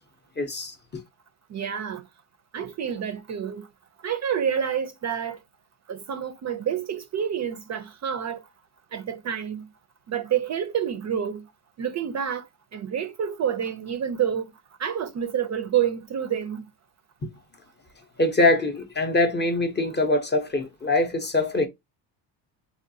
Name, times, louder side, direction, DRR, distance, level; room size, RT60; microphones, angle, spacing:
voice 1, 0.4-0.7 18.2-21.7, left 2 dB, 20° left, 0.5 m, -23 dB
voice 2, 1.5-2.0 2.5-3.7 4.0-5.4 5.9-8.4 8.9-9.7 10.1-11.5 11.8-12.4 12.7-14.5 14.8-16.6, right 8 dB, 35° right, 0.4 m, -28 dB
3.6 x 2.3 x 2.6 m
cardioid pair, 100°, 49 cm